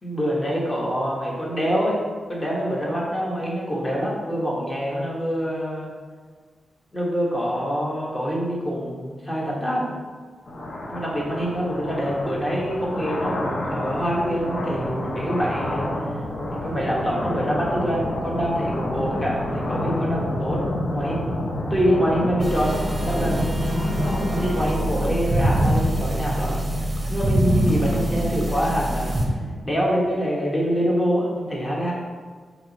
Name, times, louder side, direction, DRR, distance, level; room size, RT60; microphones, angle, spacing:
voice 1, 0.0-2.0 2.3-5.9 6.9-9.9 10.9-15.9 16.5-20.6 20.9-26.6 27.1-29.1 29.6-31.9, equal, 15° left, -4 dB, 1.3 m, -25 dB
sound 1, 10.5-29.6, left 1 dB, 45° left, 0.9 m, -29 dB
sound 2, 22.4-29.3, right 1 dB, 15° right, 0.9 m, -25 dB
7.7 x 3.0 x 4.0 m, 1.5 s
wide cardioid pair, 135°, 0 cm